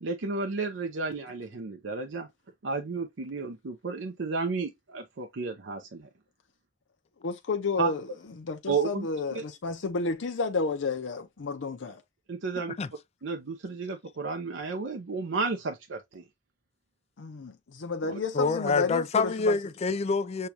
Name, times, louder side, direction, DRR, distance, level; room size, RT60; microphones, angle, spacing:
voice 1, 0.0-2.3 2.6-6.1 7.8-7.9 8.7-9.4 12.3-12.7 13.2-16.2 18.0-18.1, right 4 dB, 90° right, 0.6 m, -32 dB
voice 2, 7.2-8.0 8.4-12.0 17.2-19.6, left 4 dB, 85° left, 0.6 m, -31 dB
voice 3, 18.3-20.5, left 4 dB, 35° left, 0.4 m, -26 dB
6.5 x 2.3 x 2.8 m
head